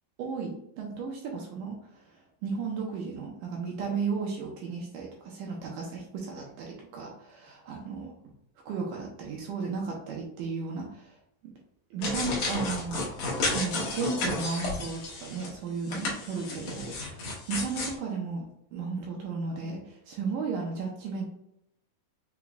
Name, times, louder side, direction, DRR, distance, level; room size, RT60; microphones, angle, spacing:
voice 1, 0.2-8.1 8.7-11.1 11.4-11.5 11.9-13.1 13.4-18.4 18.7-21.3, right 4 dB, 75° right, -1 dB, 2.1 m, -34 dB
sound 1, 12.0-15.5 15.9-18.0, left 2 dB, 65° left, 1.7 m, -32 dB
5.9 x 3.0 x 2.3 m, 0.74 s
omnidirectional pair, 4.1 m